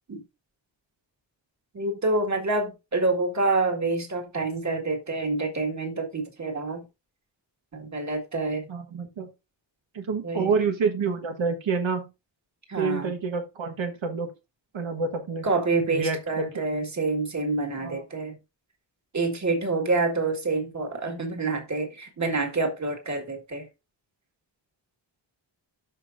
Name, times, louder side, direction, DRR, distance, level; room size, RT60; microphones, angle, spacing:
voice 1, 1.7-6.8 7.7-8.7 10.2-10.5 12.7-13.1 15.4-18.4 19.1-23.7, right 3 dB, 40° right, 1.9 m, -27 dB
voice 2, 8.7-9.3 9.9-12.1 12.8-14.3 14.7-15.5 15.9-16.6 17.8-18.0, right 5 dB, 85° right, 1.4 m, -28 dB
13.0 x 5.2 x 2.6 m
wide cardioid pair, 165°, 45 cm